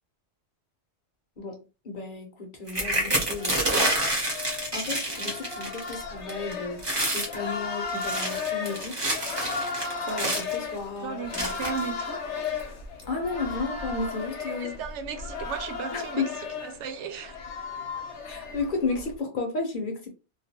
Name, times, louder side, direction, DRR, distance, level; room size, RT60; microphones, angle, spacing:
voice 1, 1.4-3.9 4.7-6.8 7.1-9.0 10.0-11.6 13.1-14.8 15.9-16.3 18.2-20.1, left 3 dB, 50° left, 0.9 m, -33 dB
sound 1, 2.7-6.0 6.3-6.5 6.8-7.3 7.9-10.6 11.3-11.9 12.6-12.7 13.0-13.3, right 1 dB, 25° right, 0.7 m, -28 dB
sound 2, 3.4-19.1, left 5 dB, 85° left, 1.0 m, -35 dB
voice 2, 11.0-12.5 14.4-16.2 16.6-17.4, right 6 dB, 85° right, 0.9 m, -36 dB
2.3 x 2.3 x 2.8 m
omnidirectional pair, 1.1 m